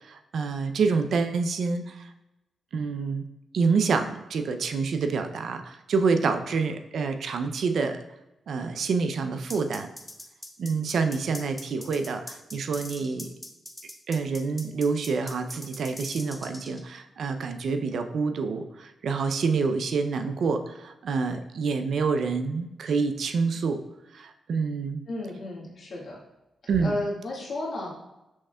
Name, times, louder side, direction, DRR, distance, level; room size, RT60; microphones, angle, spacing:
voice 1, 0.0-2.1 2.7-3.3 3.5-8.0 8.5-9.9 10.6-13.3 14.1-23.8 24.1-25.0 26.7-27.0, right 4 dB, 70° right, 7 dB, 0.4 m, -27 dB
sound 1, 9.5-16.8, left 1 dB, 5° left, 0.8 m, -41 dB
voice 2, 25.1-26.2 26.8-27.9, left 2 dB, 60° left, -3 dB, 1.5 m, -33 dB
6.2 x 3.2 x 2.2 m, 0.93 s
cardioid pair, 60°, 0 cm